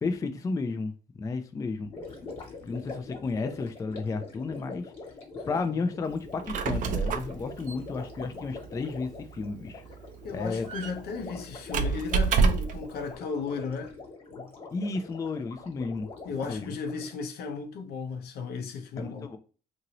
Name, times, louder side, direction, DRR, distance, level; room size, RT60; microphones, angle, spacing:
voice 1, 0.0-1.9 2.6-4.9 5.5-9.8 10.3-10.7 14.7-16.1 16.4-16.7 19.0-19.4, left 4 dB, 20° left, 0.3 m, -32 dB
Gurgling, 1.9-17.1, left 3 dB, 35° left, 1.3 m, -44 dB
voice 2, 5.4-5.8 10.2-13.9 14.3-14.5 16.2-19.3, left 5 dB, 70° left, 0.7 m, -35 dB
Squeak, 6.2-12.9, right 5 dB, 50° right, 0.5 m, -29 dB
2.8 x 2.6 x 2.8 m
cardioid pair, 110°, 17 cm